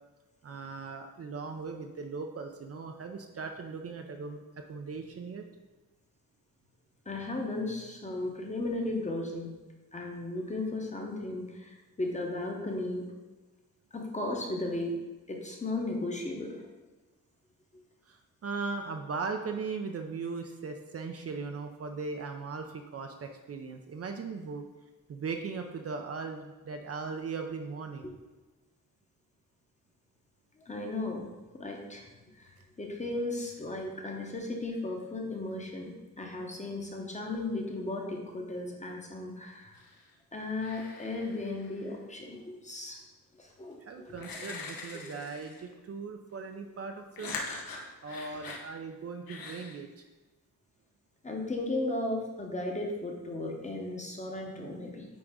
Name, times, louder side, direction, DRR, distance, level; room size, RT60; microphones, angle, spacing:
voice 1, 0.4-5.5 18.1-24.6 25.1-28.1 43.8-47.4 48.0-50.1, right 4 dB, 45° right, 4 dB, 0.5 m, -38 dB
voice 2, 7.0-9.5 9.9-13.1 13.9-15.0 15.3-16.6 30.6-39.8 40.3-43.0 43.4-43.8 44.0-44.2 48.3-48.4 51.2-55.1, left 2 dB, 20° left, 1 dB, 0.9 m, -35 dB
sound 1, 39.7-40.1 40.6-42.0 43.5-43.6 44.2-45.7 47.2-48.7 49.3-49.8, left 3 dB, 80° left, 1.1 m, -42 dB
9.4 x 3.8 x 3.7 m, 1.2 s
wide cardioid pair, 165°, 34 cm